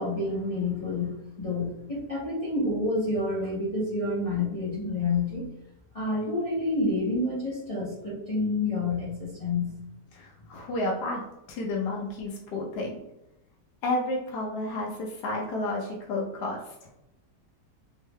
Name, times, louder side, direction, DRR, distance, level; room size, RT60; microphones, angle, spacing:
voice 1, 0.0-5.5 5.9-9.7, left 2 dB, 30° left, -8 dB, 0.6 m, -28 dB
voice 2, 10.1-11.2 11.5-13.0 13.8-16.7, left 2 dB, 80° left, -1 dB, 1.2 m, -31 dB
3.5 x 2.1 x 3.4 m, 0.88 s
omnidirectional pair, 1.8 m